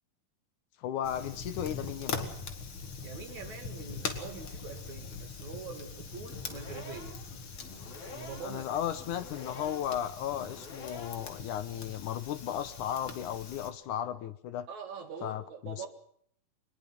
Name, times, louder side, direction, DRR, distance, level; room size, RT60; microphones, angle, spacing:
voice 1, 0.8-2.3 8.4-14.7 15.2-15.9, left 10 dB, 70° left, 13 dB, 2.2 m, -35 dB
Fire, 1.0-13.7, left 4 dB, 40° left, 2.5 m, -42 dB
voice 2, 3.0-7.2 8.0-8.6 14.7-15.9, right 6 dB, 55° right, 7 dB, 3.6 m, -44 dB
sound 1, 6.2-11.4, left 4 dB, 85° left, 5.6 m, -48 dB
23.5 x 20.5 x 5.9 m, 0.65 s
omnidirectional pair, 4.1 m